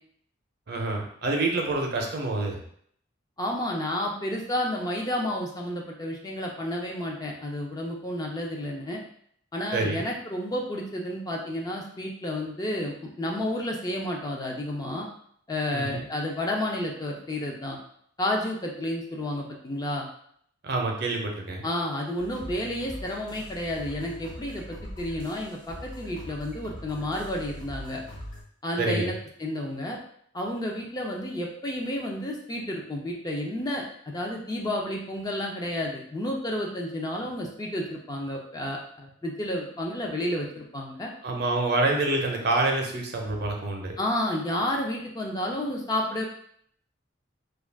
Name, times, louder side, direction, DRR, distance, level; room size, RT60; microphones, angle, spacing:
voice 1, 0.7-2.6 9.7-10.0 15.7-16.0 20.6-21.6 28.8-29.1 41.2-43.9, right 2 dB, 60° right, 1 dB, 0.6 m, -27 dB
voice 2, 3.4-9.0 9.5-15.1 15.5-17.8 18.2-20.1 21.6-28.0 28.6-30.0 30.3-41.1 44.0-46.2, left 1 dB, 20° left, 0 dB, 0.4 m, -31 dB
sound 1, 22.2-28.4, equal, 45° left, 1.2 m, -42 dB
2.3 x 2.2 x 3.3 m, 0.64 s
head